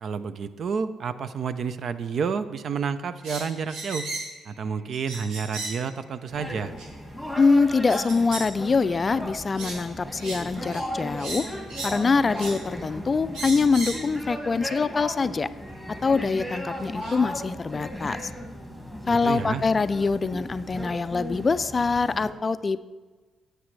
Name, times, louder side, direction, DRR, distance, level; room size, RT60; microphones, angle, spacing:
voice 1, 0.0-4.1 4.5-6.7 19.2-19.6, right 6 dB, 55° right, 12 dB, 0.5 m, -30 dB
sound 1, 3.2-4.4 4.9-5.9 6.8-6.9 7.9-8.5 8.9-9.1 9.6-9.8 10.2-10.4 10.7-10.8 11.2-12.0 12.4-12.6 13.3-14.1 15.1-15.2 16.4-16.5 17.0-17.1, right 2 dB, 85° right, 1.9 m, -35 dB
sound 2, 6.3-22.3, equal, 5° right, 1.9 m, -36 dB
voice 2, 7.4-11.5 11.8-15.5 16.0-18.3 19.1-22.8, left 4 dB, 35° left, 14 dB, 0.3 m, -24 dB
12.5 x 8.1 x 3.2 m, 1.3 s
cardioid pair, 90°, 0 cm